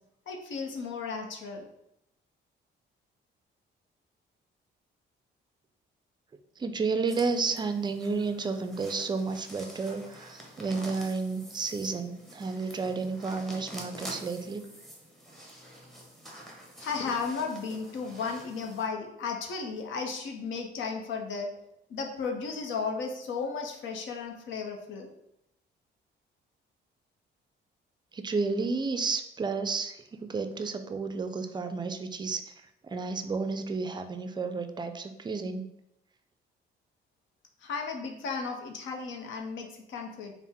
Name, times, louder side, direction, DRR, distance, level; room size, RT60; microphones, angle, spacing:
voice 1, 0.3-1.7 16.8-21.5 21.9-25.1 37.6-40.3, left 5 dB, 75° left, 2 dB, 0.6 m, -34 dB
voice 2, 6.6-14.6 28.1-32.5 32.8-35.7, right 4 dB, 20° right, 8 dB, 0.4 m, -31 dB
sound 1, 7.1-18.9, right 1 dB, ahead, 0.8 m, -47 dB
3.5 x 2.0 x 4.1 m, 0.82 s
cardioid pair, 90°, 20 cm